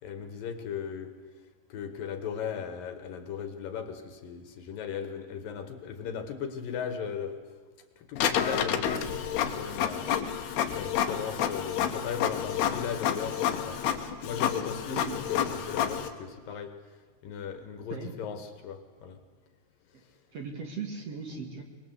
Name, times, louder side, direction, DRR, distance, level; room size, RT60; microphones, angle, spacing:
voice 1, 0.0-1.1 1.7-7.4 8.0-10.1 10.7-16.8 17.2-19.2, left 7 dB, 65° left, 8 dB, 3.1 m, -37 dB
Printer, 8.2-16.1, left 9 dB, 85° left, 3.3 m, -29 dB
voice 2, 20.3-21.6, right 5 dB, 45° right, 3 dB, 2.7 m, -38 dB
24.0 x 21.5 x 8.2 m, 1.3 s
omnidirectional pair, 4.5 m